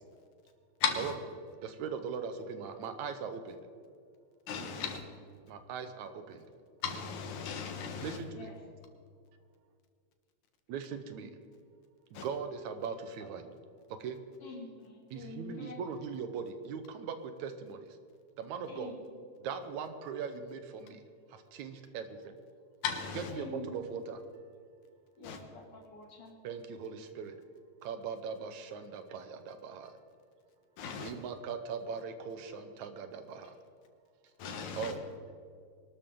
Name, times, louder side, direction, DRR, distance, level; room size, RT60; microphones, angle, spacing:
voice 1, 0.8-1.1 4.5-5.0 6.8-8.2 12.1-12.3 22.8-23.3 25.2-25.4 30.8-31.1 34.4-34.9, left 6 dB, 80° left, 2.8 m, -36 dB
voice 2, 1.6-3.6 5.5-6.4 8.0-8.5 10.7-11.3 12.1-13.5 14.0-14.2 15.1-18.0 18.4-18.9 19.4-21.0 21.3-22.4 23.1-24.2 26.4-27.4 27.8-30.0 30.9-33.6 34.7-35.1, right 6 dB, 80° right, 2.3 m, -40 dB
voice 3, 14.4-15.8 18.7-19.0 23.3-23.9 25.2-26.3, left 2 dB, 55° left, 3.3 m, -46 dB
23.5 x 12.5 x 3.8 m
omnidirectional pair, 3.3 m